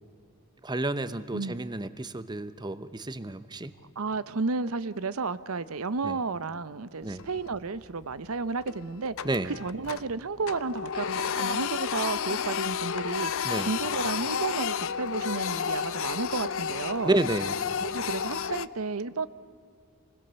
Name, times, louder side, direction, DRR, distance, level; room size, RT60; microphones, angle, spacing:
voice 1, 0.6-3.7 6.0-6.2 7.0-7.3 9.2-9.5 13.4-13.7 17.0-17.6, right 2 dB, 20° right, 13 dB, 0.8 m, -30 dB
voice 2, 4.0-9.1 9.4-13.3 13.6-17.1 17.8-19.3, right 4 dB, 70° right, 15 dB, 0.7 m, -32 dB
Printer, 7.1-7.7 8.0-8.2 8.6-10.2 10.4-18.7, left 7 dB, 60° left, 0.6 m, -31 dB
28.0 x 21.0 x 6.9 m, 2.3 s
head